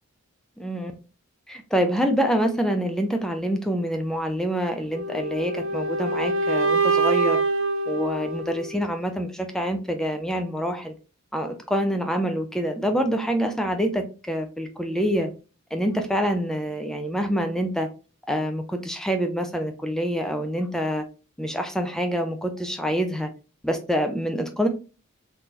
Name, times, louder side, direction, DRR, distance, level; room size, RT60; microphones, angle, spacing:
voice 1, 0.6-0.9 1.5-7.4 7.9-10.9 11.3-15.3 15.7-17.9 18.3-21.0 21.4-23.3 23.6-24.7, equal, 5° left, 6 dB, 0.4 m, -26 dB
sound 1, 4.9-8.9, right 3 dB, 60° right, 0.4 m, -25 dB
3.6 x 2.9 x 2.5 m, 0.33 s
head